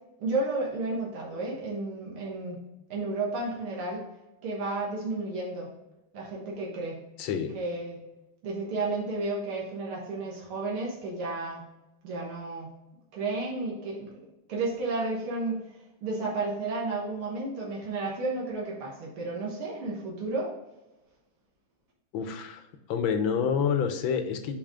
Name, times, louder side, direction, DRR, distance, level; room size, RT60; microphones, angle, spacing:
voice 1, 0.2-2.6 2.9-4.1 4.4-5.7 6.1-7.0 7.5-8.0 8.4-11.6 12.0-12.7 13.1-14.1 14.5-15.7 16.0-20.5, right 3 dB, 80° right, -3 dB, 2.3 m, -32 dB
voice 2, 7.2-7.5 22.1-22.6 22.9-24.5, left 7 dB, 70° left, 7 dB, 1.5 m, -28 dB
7.5 x 4.7 x 3.7 m, 0.97 s
omnidirectional pair, 2.4 m